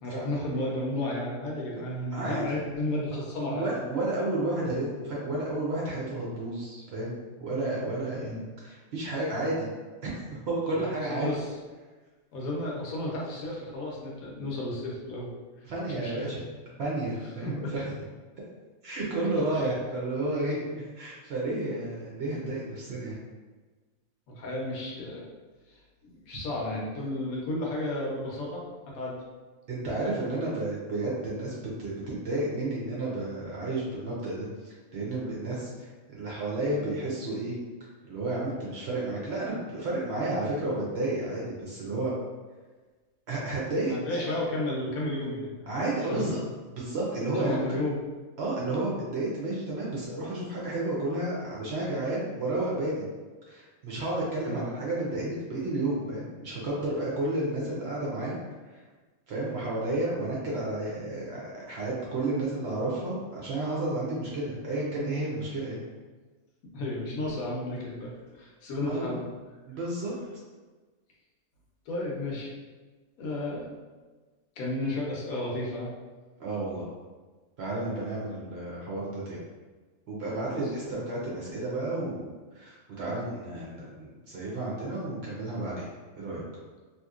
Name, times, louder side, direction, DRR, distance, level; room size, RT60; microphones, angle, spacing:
voice 1, 0.0-3.7 8.1-8.4 11.1-11.5 12.3-15.3 16.0-16.3 17.4-17.7 19.5-19.6 24.4-25.2 25.7-28.6 28.9-29.2 43.9-45.7 46.1-46.4 47.4-48.0 54.4-54.7 66.7-68.1 68.3-69.3 71.9-72.5 73.2-73.7 74.6-75.9 80.5-80.9, left 1 dB, 80° left, -3 dB, 1.2 m, -33 dB
voice 2, 2.1-2.6 3.5-8.3 8.6-9.7 10.5-11.3 15.6-16.4 16.8-17.8 18.8-23.2 29.7-31.5 31.8-37.5 38.1-42.1 43.3-44.3 45.7-46.4 46.7-47.8 48.4-53.1 53.5-58.4 58.7-58.8 59.3-65.8 68.9-69.1 69.6-70.1 76.4-76.9 77.6-79.4 80.1-85.9 86.2-86.4, right 2 dB, 60° right, -5 dB, 0.7 m, -31 dB
2.8 x 2.7 x 2.4 m, 1.3 s
omnidirectional pair, 1.5 m